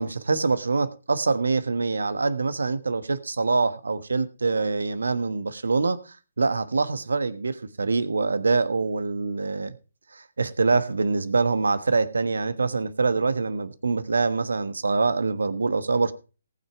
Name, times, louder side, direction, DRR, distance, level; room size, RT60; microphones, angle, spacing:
voice 1, 0.0-9.7 10.1-16.1, right 4 dB, 80° right, 1.1 m, -25 dB
18.5 x 6.2 x 4.6 m
figure-of-eight pair, 145°, 0 cm